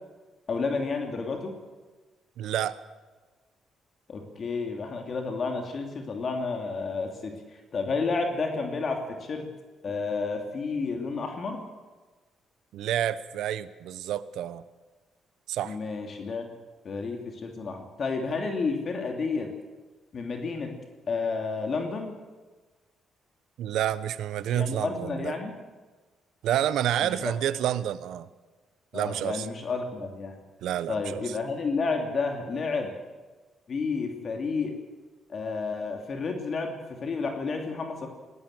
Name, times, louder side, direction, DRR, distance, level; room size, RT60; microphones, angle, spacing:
voice 1, 0.5-1.5 4.1-9.5 9.8-11.6 15.6-16.5 16.8-19.5 20.1-20.8 21.1-22.1 24.5-25.5 27.0-27.3 28.9-30.4 30.9-32.9 33.7-34.7 35.3-38.1, left 4 dB, 50° left, 3 dB, 3.0 m, -31 dB
voice 2, 2.4-2.8 12.7-14.6 15.5-15.8 23.6-25.3 26.4-28.3 28.9-29.5 30.6-31.3, right 11 dB, 80° right, 14 dB, 1.0 m, -29 dB
20.0 x 18.5 x 8.0 m, 1.3 s
cardioid pair, 90°, 0 cm